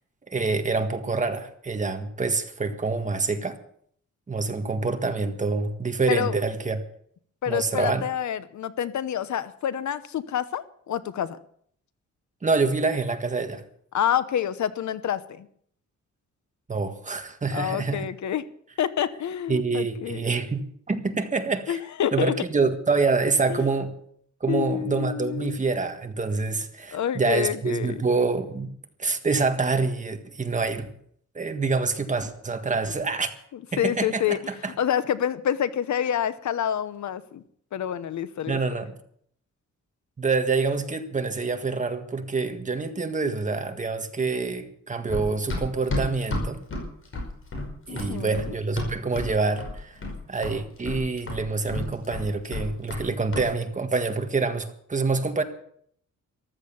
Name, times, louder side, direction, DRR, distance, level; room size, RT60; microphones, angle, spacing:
voice 1, 0.3-3.6 4.3-6.8 7.5-8.0 12.4-13.6 16.7-18.1 19.5-21.8 22.1-23.9 24.4-28.7 29.0-30.9 31.3-33.3 33.7-34.4 34.6-34.7 38.5-38.9 40.2-46.6 47.9-50.0 50.3-55.4, right 4 dB, 25° right, 7 dB, 1.6 m, -26 dB
voice 2, 7.4-11.4 13.9-15.5 17.5-18.4 18.8-20.2 21.7-22.3 23.5-23.7 24.5-25.6 26.9-28.0 33.8-34.4 34.8-37.4 37.7-38.6 47.9-48.5, left 9 dB, 75° left, 14 dB, 1.0 m, -27 dB
Run, 45.1-49.3 49.6-50.2 50.4-53.1 53.3-53.5, left 2 dB, 45° left, 5.4 m, -31 dB
14.5 x 13.0 x 7.0 m, 0.64 s
wide cardioid pair, 165°, 29 cm